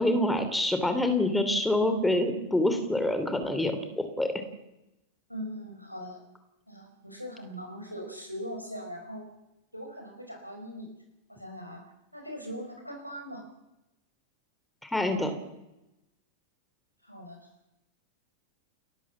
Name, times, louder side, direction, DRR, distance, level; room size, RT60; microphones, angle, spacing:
voice 1, 0.0-4.3 14.8-15.3, left 1 dB, 5° left, 7 dB, 2.8 m, -26 dB
voice 2, 5.3-6.2 6.7-9.2 9.7-10.9 11.3-11.8 12.1-13.4 17.0-17.4, equal, 90° left, 3 dB, 5.2 m, -40 dB
29.5 x 13.0 x 7.3 m, 0.91 s
figure-of-eight pair, 90°, 0 cm